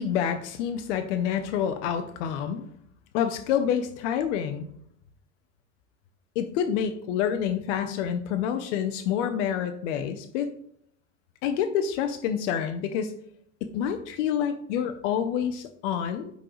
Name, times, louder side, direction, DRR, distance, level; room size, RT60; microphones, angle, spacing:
voice 1, 0.0-2.7 3.1-4.7 6.4-10.5 11.4-13.1 13.6-16.3, left 8 dB, 70° left, 8 dB, 0.8 m, -28 dB
9.7 x 4.0 x 3.0 m, 0.69 s
supercardioid pair, 105°, 37 cm